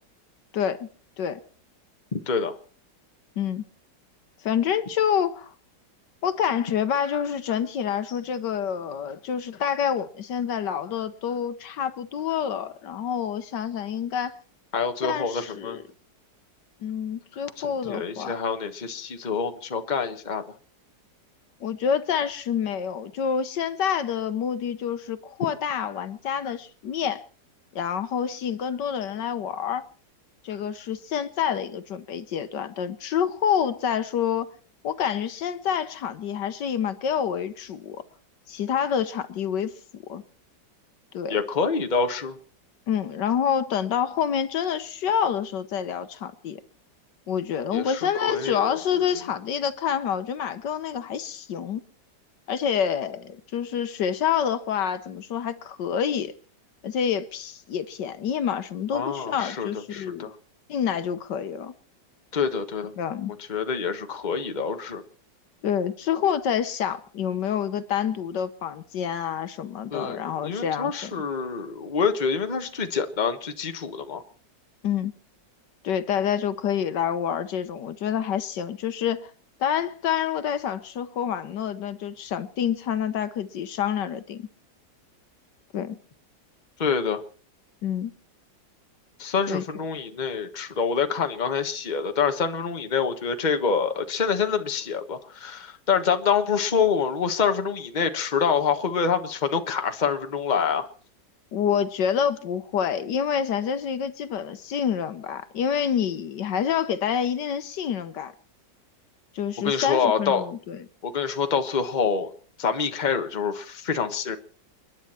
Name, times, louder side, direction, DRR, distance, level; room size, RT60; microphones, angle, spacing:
voice 1, 0.5-0.9 1.2-1.4 3.4-3.6 4.4-5.5 6.2-14.3 15.0-15.8 16.8-18.4 21.6-27.2 27.7-29.8 30.4-34.5 34.8-38.0 38.5-39.7 40.1-40.2 41.1-41.4 42.9-46.6 47.3-51.8 52.5-56.3 56.8-60.3 60.7-61.7 63.0-63.3 65.6-71.1 74.8-75.1 75.8-79.3 79.6-84.5 85.7-86.0 87.8-88.1 89.5-89.6 101.5-108.3 109.3-110.8, left 8 dB, 75° left, 1.6 m, -27 dB
voice 2, 2.1-2.6 14.7-15.8 17.6-20.4 41.3-42.4 47.7-48.0 48.3-48.8 58.9-60.3 62.3-62.9 63.5-65.0 69.9-74.2 86.8-87.2 89.2-100.9 109.6-110.5 111.0-112.3 112.6-114.4, left 6 dB, 30° left, 1.3 m, -26 dB
29.5 x 10.5 x 4.4 m
omnidirectional pair, 1.9 m